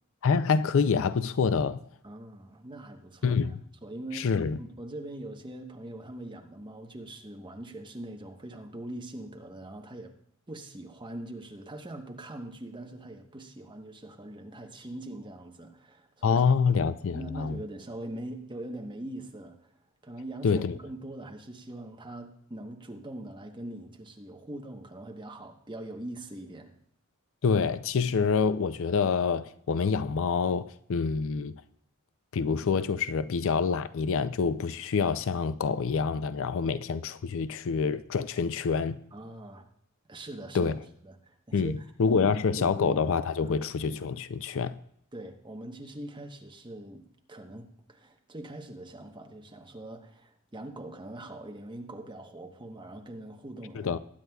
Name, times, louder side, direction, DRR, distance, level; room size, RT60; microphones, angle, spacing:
voice 1, 0.2-1.8 3.2-3.6 4.1-4.6 16.2-17.6 20.4-20.8 27.4-31.6 32.3-39.0 40.5-40.7 41.5-44.7 53.8-54.0, left 5 dB, 65° left, 0.4 m, -26 dB
voice 2, 2.0-3.5 3.8-4.3 4.6-10.1 10.5-16.4 17.1-19.8 20.0-26.7 39.1-39.7 40.1-40.7 41.0-42.2 42.6-42.8 43.4-43.6 45.1-54.0, right 1 dB, 20° right, 1.0 m, -42 dB
20.5 x 9.2 x 2.3 m
head